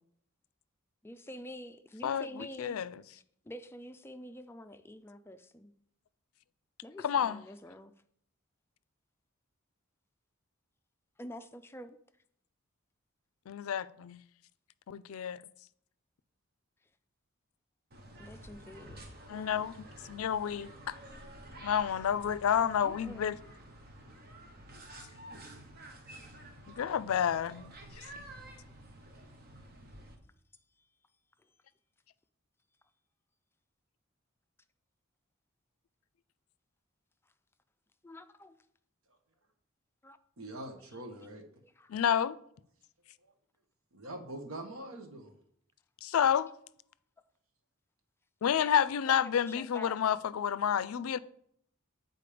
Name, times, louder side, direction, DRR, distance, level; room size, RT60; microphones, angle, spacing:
voice 1, 1.0-2.8 3.5-5.7 6.8-7.9 11.2-12.0 18.2-19.6 22.8-23.4 38.0-38.6 40.0-40.2 41.6-42.0 46.1-46.3 48.6-48.7 49.1-49.2 49.5-50.0, left 1 dB, 10° left, 0.3 m, -47 dB
voice 2, 2.0-3.0 7.0-7.4 13.5-14.2 14.9-15.4 19.3-21.0 21.6-23.4 26.7-28.1 41.9-42.4 46.0-46.5 48.4-51.2, left 8 dB, 85° left, 0.4 m, -30 dB
sound 1, 17.9-30.1, right 1 dB, 45° right, 1.1 m, -51 dB
voice 3, 40.4-41.4 43.2-43.3 43.9-45.3, right 1 dB, 80° right, 1.2 m, -43 dB
8.4 x 4.1 x 5.0 m
head